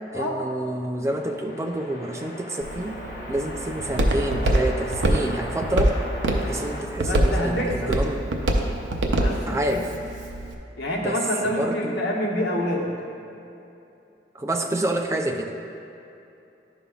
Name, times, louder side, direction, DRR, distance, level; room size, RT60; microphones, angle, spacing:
voice 1, 0.1-3.0 3.3-6.0 6.4-8.2 9.5-9.9 11.0-11.2 11.4-12.0 14.3-15.5, right 1 dB, 15° right, 3 dB, 0.4 m, -28 dB
sound 1, 1.1-6.8, left 1 dB, 50° left, 1.1 m, -38 dB
Walk footsteps, 2.6-10.5, right 1 dB, 85° right, 0.6 m, -25 dB
voice 2, 7.0-7.9 9.1-9.8 10.8-12.9, equal, 75° left, -4 dB, 1.2 m, -27 dB
11.0 x 5.3 x 2.4 m, 2.8 s
head